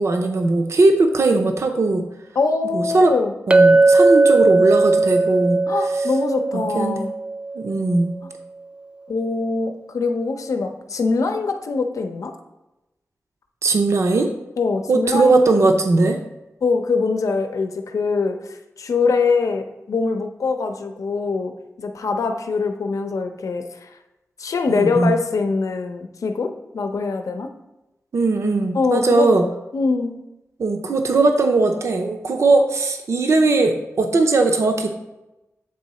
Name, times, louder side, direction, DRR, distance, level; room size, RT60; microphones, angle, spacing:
voice 1, 0.0-2.0 2.7-3.1 3.5-5.6 6.5-7.0 7.5-8.1 13.6-14.3 14.9-16.2 24.7-25.2 28.1-29.4 30.6-34.9, right 3 dB, 60° right, 5 dB, 0.6 m, -18 dB
voice 2, 2.4-3.3 5.7-7.1 8.2-8.3 9.1-12.3 14.6-15.7 16.6-21.5 21.8-23.9 24.4-27.5 28.7-29.3 29.7-30.2, left 4 dB, 80° left, 6 dB, 0.6 m, -23 dB
Chink clink, 3.5-8.0, right 3 dB, 20° right, 0.3 m, -17 dB
7.6 x 3.8 x 4.2 m, 0.98 s
wide cardioid pair, 115°, 5 cm